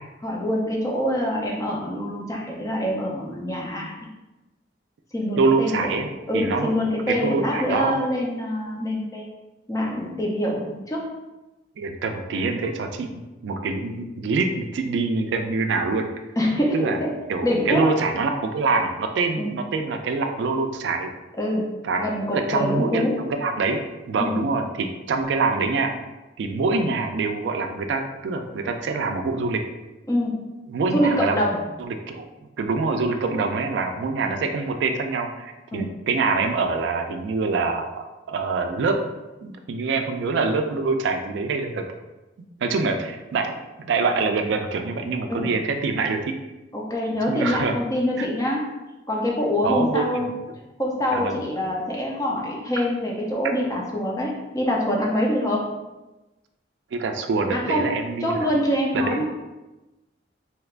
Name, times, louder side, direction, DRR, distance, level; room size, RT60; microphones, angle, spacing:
voice 1, 0.2-3.9 5.1-5.9 6.3-9.2 9.7-11.1 16.4-17.1 17.4-17.9 19.4-19.5 21.4-21.6 22.0-23.1 24.2-24.4 30.1-30.3 30.9-31.6 35.7-35.9 45.3-45.5 46.7-48.6 49.1-50.3 50.8-55.6 57.5-57.9 58.2-59.3, equal, 15° left, -2 dB, 0.5 m, -25 dB
voice 2, 5.4-6.7 7.1-8.0 11.8-16.1 16.7-17.0 17.3-21.1 21.8-23.8 24.1-25.9 26.4-29.6 30.7-31.4 31.8-32.3 32.6-38.9 39.4-41.8 42.4-46.2 47.3-47.7 48.2-48.3 49.6-50.1 51.1-51.4 56.9-58.5 58.9-59.2, right 4 dB, 70° right, 6 dB, 0.3 m, -25 dB
3.3 x 2.8 x 2.4 m, 1.1 s
head